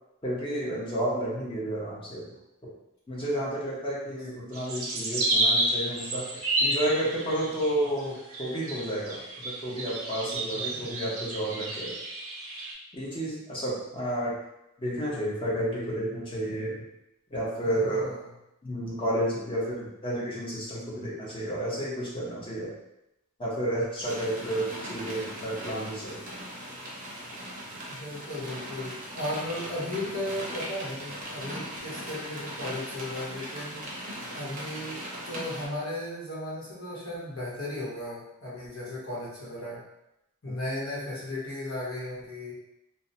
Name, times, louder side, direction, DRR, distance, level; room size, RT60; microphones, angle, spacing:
voice 1, 0.2-2.3 3.1-12.0 12.9-14.4 14.8-16.8 17.3-18.1 18.6-22.7 23.4-26.3, right 1 dB, 25° left, -6 dB, 0.7 m, -31 dB
sound 1, 4.5-12.7, right 1 dB, 80° right, 0.6 m, -30 dB
voice 2, 10.5-11.2 17.6-18.3 27.9-35.0 35.3-39.8 40.4-42.5, left 1 dB, 70° left, -7 dB, 1.1 m, -36 dB
sound 2, 24.0-35.7, equal, 40° right, 0.6 m, -39 dB
2.7 x 2.1 x 2.7 m, 0.87 s
head